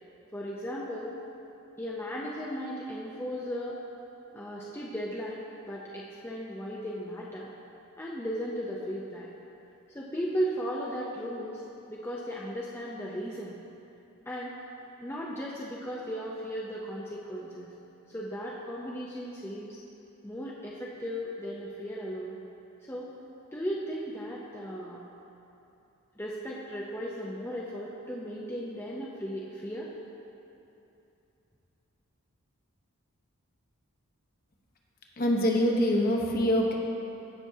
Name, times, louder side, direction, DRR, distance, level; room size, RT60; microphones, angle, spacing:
voice 1, 0.3-1.1 1.8-3.8 4.3-7.5 8.0-9.3 9.9-11.6 11.9-13.6 14.3-14.6 15.0-17.7 18.1-19.8 20.2-22.4 22.9-23.1 23.5-25.0 26.2-29.9, equal, 10° left, -5 dB, 0.5 m, -36 dB
voice 2, 35.2-36.7, equal, 40° left, -1 dB, 0.9 m, -24 dB
15.5 x 6.0 x 2.7 m, 2.8 s
head